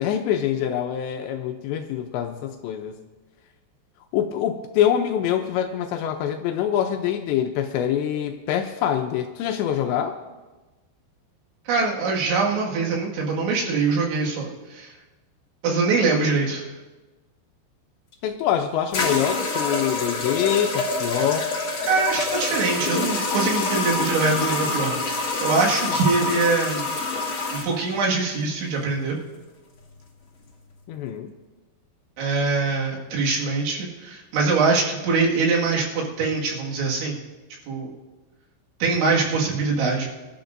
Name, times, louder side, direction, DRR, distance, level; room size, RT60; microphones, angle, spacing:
voice 1, 0.0-3.0 4.1-10.2 18.2-21.5 25.9-26.0 30.9-31.3, left 10 dB, 80° left, 5 dB, 2.7 m, -25 dB
voice 2, 11.7-14.9 15.6-16.7 21.8-26.9 27.5-29.2 32.2-37.2 37.7-37.9 38.8-40.1, right 4 dB, 75° right, -3 dB, 4.2 m, -23 dB
sound 1, 18.1-18.2 18.9-27.7, left 3 dB, 55° left, 1.4 m, -26 dB
25.0 x 12.5 x 2.6 m, 1.2 s
omnidirectional pair, 5.6 m